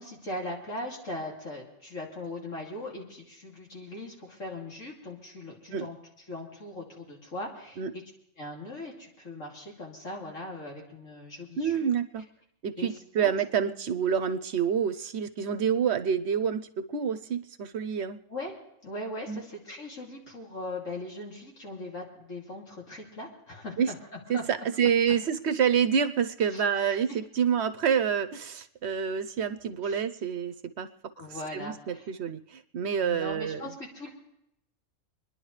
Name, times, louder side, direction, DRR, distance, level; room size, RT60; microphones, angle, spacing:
voice 1, 0.0-8.0 8.4-11.9 12.8-13.3 18.3-18.6 18.8-23.9 24.3-24.4 26.5-26.6 26.9-27.0 29.8-30.0 31.1-32.1 33.0-34.1, left 1 dB, 75° left, -2 dB, 3.1 m, -39 dB
voice 2, 11.6-12.2 12.6-18.2 19.3-19.4 23.8-23.9 24.3-30.9 31.5-33.7, right 7 dB, 60° right, 11 dB, 0.8 m, -28 dB
26.5 x 11.0 x 3.2 m, 0.78 s
omnidirectional pair, 1.4 m